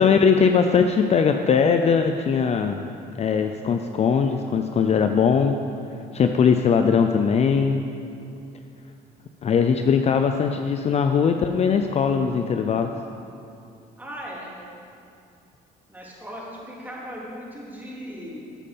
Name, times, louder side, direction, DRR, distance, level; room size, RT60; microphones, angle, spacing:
voice 1, 0.0-2.8 3.2-5.6 6.1-7.8 9.4-12.9, left 6 dB, 40° left, 6 dB, 0.5 m, -20 dB
voice 2, 14.0-14.6 15.9-18.4, equal, 10° right, -5 dB, 3.2 m, -37 dB
13.0 x 8.4 x 5.4 m, 2.5 s
cardioid pair, 110°, 17 cm